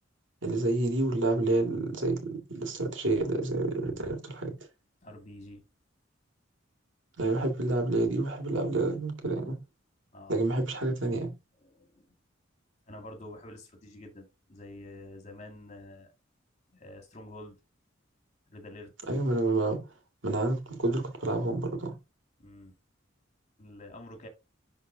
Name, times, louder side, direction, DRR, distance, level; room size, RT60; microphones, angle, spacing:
voice 1, 0.4-4.6 7.2-9.6 10.3-11.4 19.1-19.9 20.2-22.0, right 2 dB, 75° right, 2.3 m, -29 dB
voice 2, 5.0-5.7 10.1-10.4 11.6-12.1 12.9-16.1 16.7-17.6 18.5-18.9 22.4-22.7 23.6-24.3, left 1 dB, 35° left, 2.2 m, -47 dB
11.5 x 4.0 x 2.8 m
head